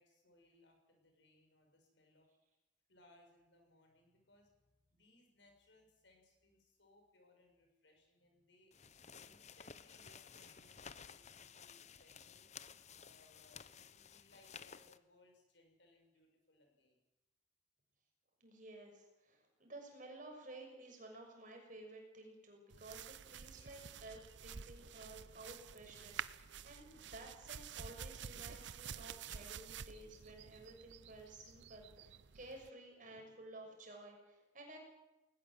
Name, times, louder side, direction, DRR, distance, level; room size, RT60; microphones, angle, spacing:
voice 1, 0.0-2.3 2.9-8.8 9.2-12.5 13.0-17.0, left 2 dB, 70° left, 3 dB, 6.7 m, -69 dB
sound 1, 8.7-15.0, left 7 dB, 35° left, 0.8 m, -55 dB
voice 2, 18.4-34.8, right 2 dB, 45° right, 2 dB, 6.5 m, -54 dB
sound 2, 22.7-32.7, right 7 dB, 70° right, 0.7 m, -50 dB
20.5 x 20.0 x 7.8 m, 0.98 s
head